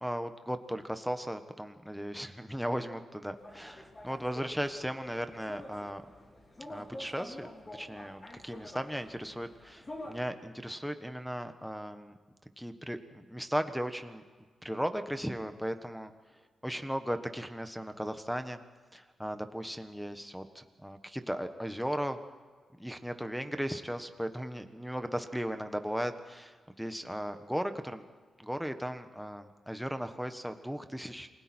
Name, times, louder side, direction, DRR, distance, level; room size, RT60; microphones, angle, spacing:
voice 1, 0.0-6.0 6.7-12.1 12.6-14.2 14.6-16.1 16.6-18.6 18.9-22.2 22.8-28.0 28.4-31.3, equal, ahead, 7 dB, 1.3 m, -36 dB
sound 1, 3.4-10.2, left 1 dB, 25° left, 3.1 m, -48 dB
28.5 x 21.0 x 4.5 m, 1.5 s
cardioid pair, 120°, 0 cm